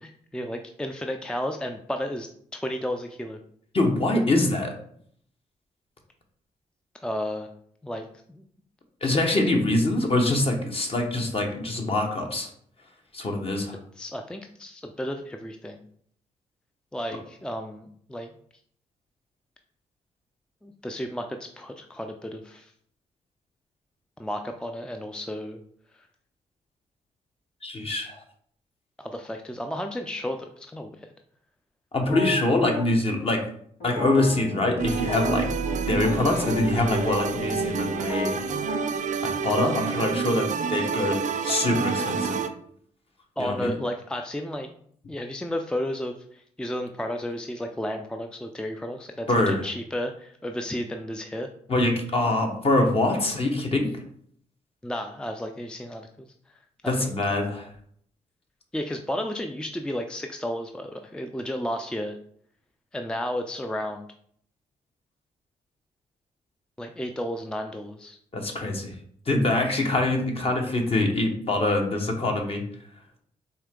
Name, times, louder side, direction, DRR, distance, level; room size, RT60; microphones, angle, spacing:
voice 1, 0.0-3.4 7.0-7.5 7.8-8.4 9.0-9.1 14.0-15.8 16.9-18.3 20.6-22.7 24.2-25.6 29.0-31.0 43.4-44.7 45.1-51.5 54.8-56.3 56.8-57.1 58.7-62.2 62.9-64.0 66.8-68.2, equal, 5° left, 5 dB, 0.4 m, -33 dB
voice 2, 3.7-4.7 9.0-12.5 13.1-13.8 27.6-28.2 31.9-33.4 33.8-35.5 35.9-38.7 39.2-42.5 43.4-43.7 49.3-49.6 51.7-53.9 56.9-57.7 68.3-68.9 69.3-72.7, left 2 dB, 40° left, 2 dB, 1.1 m, -24 dB
sound 1, 32.1-32.8 33.8-35.8 36.0-36.1 36.4-38.9, left 2 dB, 80° left, 1.7 m, -33 dB
sound 2, 34.8-42.5, right 6 dB, 55° right, 0.5 m, -28 dB
4.3 x 2.8 x 3.7 m, 0.63 s
supercardioid pair, 50°, 15 cm